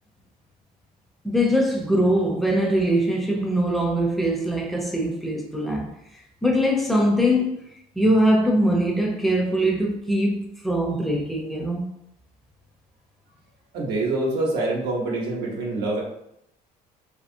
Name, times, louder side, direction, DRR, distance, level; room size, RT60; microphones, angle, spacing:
voice 1, 1.2-5.9 6.4-7.5 8.0-11.9, equal, ahead, 0.6 m, -22 dB
voice 2, 13.7-16.0, right 2 dB, 80° right, 0.9 m, -25 dB
2.9 x 2.8 x 2.6 m
cardioid pair, 110°, 17 cm